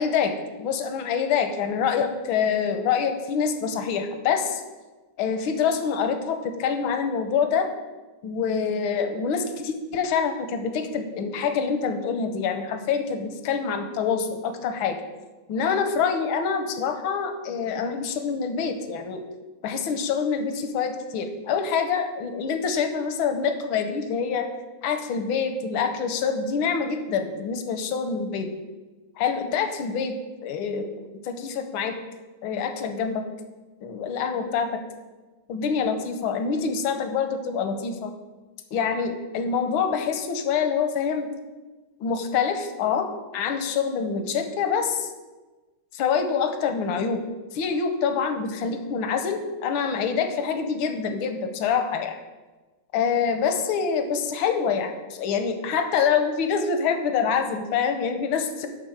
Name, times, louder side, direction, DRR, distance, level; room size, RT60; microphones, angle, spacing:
voice 1, 0.0-4.6 5.2-7.7 8.2-15.0 15.5-19.2 19.6-24.5 24.8-28.5 29.2-30.9 31.2-32.0 32.4-33.2 33.8-34.8 35.5-38.1 38.7-41.3 42.0-45.1 45.9-47.2 47.5-52.2 52.9-58.7, left 6 dB, 85° left, 7 dB, 1.6 m, -26 dB
11.0 x 3.9 x 6.4 m, 1.2 s
omnidirectional pair, 2.2 m